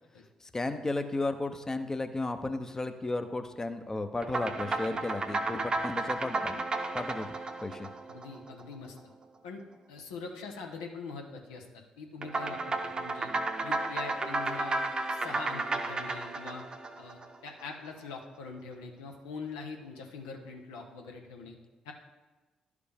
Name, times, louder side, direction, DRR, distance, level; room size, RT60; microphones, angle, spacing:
voice 1, 0.4-6.6 6.9-7.3 7.6-7.9, left 2 dB, 25° left, 7 dB, 0.7 m, -34 dB
sound 1, 4.2-8.9 12.2-17.6, right 2 dB, 40° right, 0.8 m, -33 dB
voice 2, 8.1-9.0 9.4-9.6 9.9-13.3 13.6-14.8 15.1-16.7 17.0-21.6 21.8-21.9, left 4 dB, 85° left, 2 dB, 0.8 m, -43 dB
11.5 x 5.0 x 3.4 m, 1.2 s
hypercardioid pair, 50°, 2 cm